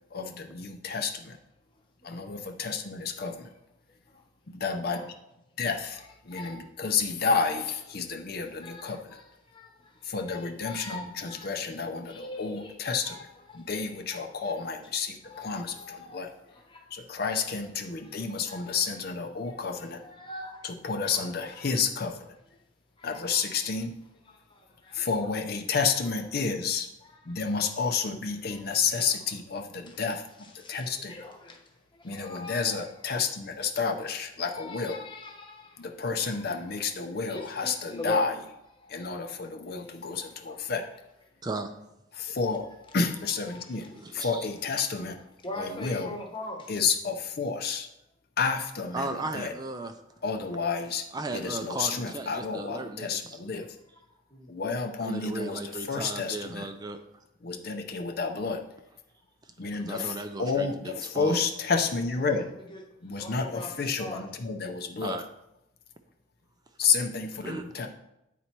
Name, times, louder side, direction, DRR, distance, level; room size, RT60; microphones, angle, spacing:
voice 1, 0.1-1.4 2.0-3.5 4.5-5.0 5.6-9.2 10.0-13.2 13.5-16.3 16.9-20.0 20.6-22.3 23.0-23.9 24.9-26.9 27.3-30.2 30.5-31.3 32.0-35.0 35.8-38.3 38.9-40.8 42.1-42.7 42.9-43.9 44.1-45.2 45.5-46.2 46.7-47.9 48.4-49.5 50.2-51.0 51.3-53.7 54.5-56.7 57.4-58.6 59.6-62.5 63.0-65.2 66.8-67.9, left 5 dB, 55° left, 0.6 m, -30 dB
voice 2, 6.3-6.6 8.6-9.9 10.3-11.5 12.1-12.8 13.0-13.2 13.5-13.7 14.1-14.5 15.3-16.9 18.0-18.2 18.5-18.8 19.4-19.6 20.0-20.6 21.0-21.1 23.0-23.4 24.3-25.1 27.3-27.4 29.9-30.0 30.6-31.6 32.0-32.6 34.5-35.8 37.3-38.2 38.8-38.9 39.9-40.6 43.5-43.7 45.4-46.7 54.3-54.5 62.2-62.4 62.7-62.8 63.2-63.7 64.0-64.2, left 2 dB, 25° left, 1.0 m, -41 dB
voice 3, 43.9-44.5 48.9-49.9 51.1-53.4 55.0-57.0 59.8-61.4 65.0-65.2 67.4-67.6, right 2 dB, 20° right, 0.4 m, -36 dB
9.2 x 4.2 x 4.5 m
head